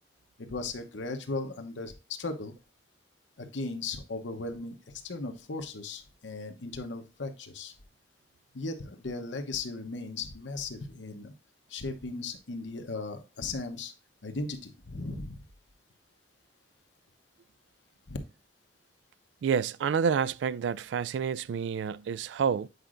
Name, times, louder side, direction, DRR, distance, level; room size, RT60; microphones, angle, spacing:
voice 1, 0.5-2.5 3.4-4.8 5.0-7.7 8.5-11.3 11.7-13.9 14.2-15.4 18.1-18.2, left 3 dB, 85° left, 0.9 m, -37 dB
voice 2, 19.4-22.7, right 7 dB, 80° right, 0.3 m, -29 dB
8.0 x 4.9 x 2.5 m
head